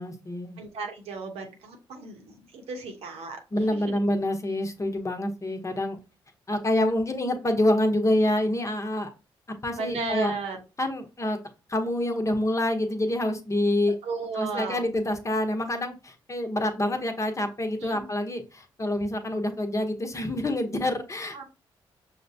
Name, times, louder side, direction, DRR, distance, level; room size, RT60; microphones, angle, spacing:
voice 1, 0.0-0.6 3.5-6.0 6.5-9.1 9.6-10.3 10.8-11.4 11.7-13.9 14.3-21.4, left 1 dB, 30° left, 5 dB, 0.9 m, -27 dB
voice 2, 0.6-3.4 3.7-4.0 9.8-10.6 14.0-14.8 17.8-18.1 21.3-21.4, right 4 dB, 75° right, 3 dB, 0.9 m, -34 dB
5.7 x 2.2 x 2.7 m, 0.30 s
supercardioid pair, 55°, 11 cm